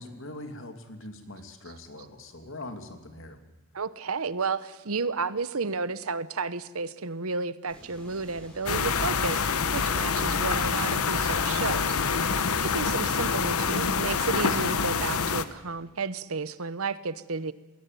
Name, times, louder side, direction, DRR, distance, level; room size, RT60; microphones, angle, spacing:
voice 1, 0.0-3.4, left 1 dB, 60° left, 7 dB, 2.6 m, -42 dB
voice 2, 3.7-12.0 12.6-17.5, right 4 dB, 70° right, 15 dB, 1.0 m, -32 dB
sound 1, 7.7-13.1, equal, 5° left, 5.4 m, -48 dB
sound 2, 8.7-15.4, left 5 dB, 75° left, 1.1 m, -26 dB
21.0 x 18.0 x 9.2 m, 1.2 s
head